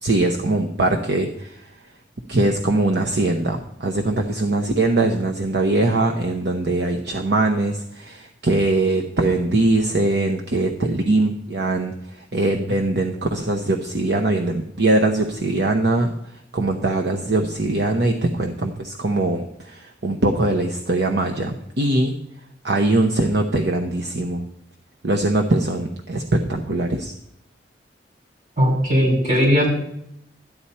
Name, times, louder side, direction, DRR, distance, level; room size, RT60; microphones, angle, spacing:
voice 1, 0.0-1.6 2.3-16.1 16.5-22.1 22.6-24.4 25.0-27.1, right 2 dB, 70° right, 3 dB, 0.9 m, -21 dB
voice 2, 28.6-29.7, equal, 45° right, -2 dB, 5.4 m, -18 dB
13.5 x 9.8 x 4.3 m, 0.76 s
head